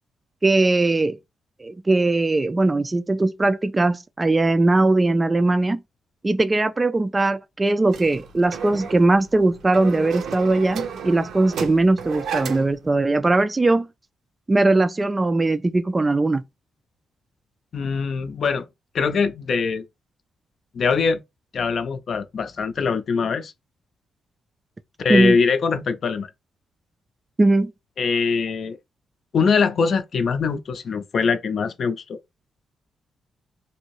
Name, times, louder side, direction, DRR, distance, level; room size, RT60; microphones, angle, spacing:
voice 1, 0.4-1.2 1.6-5.8 6.2-13.9 14.5-16.4 25.1-25.4 27.4-27.7, right 2 dB, 20° right, 0.3 m, -20 dB
sound 1, 7.9-12.8, right 7 dB, 75° right, 0.7 m, -33 dB
voice 2, 17.7-18.7 18.9-19.8 20.7-21.2 21.5-23.5 25.0-26.3 28.0-28.8 29.3-32.2, left 5 dB, 50° left, 0.5 m, -22 dB
2.9 x 2.7 x 3.1 m
cardioid pair, 120°, 0 cm